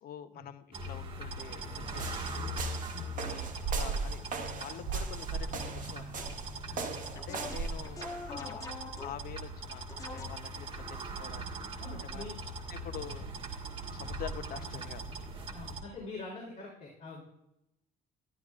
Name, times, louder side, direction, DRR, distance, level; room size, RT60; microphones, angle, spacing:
voice 1, 0.0-2.9 3.1-4.2 4.6-6.2 7.1-8.7 9.0-11.5 12.1-12.3 12.7-13.3 13.9-15.0, left 9 dB, 60° left, 11 dB, 0.8 m, -46 dB
sound 1, 0.7-15.8, right 2 dB, 30° right, 1.7 m, -41 dB
sound 2, 1.9-8.3, right 5 dB, 50° right, 1.4 m, -37 dB
sound 3, 6.2-6.4 6.8-9.4 9.9-10.7, left 3 dB, 20° left, 1.4 m, -45 dB
voice 2, 11.8-12.3 15.5-17.2, left 3 dB, 45° left, -4 dB, 3.7 m, -44 dB
13.0 x 11.5 x 2.5 m, 0.85 s
cardioid pair, 110°, 17 cm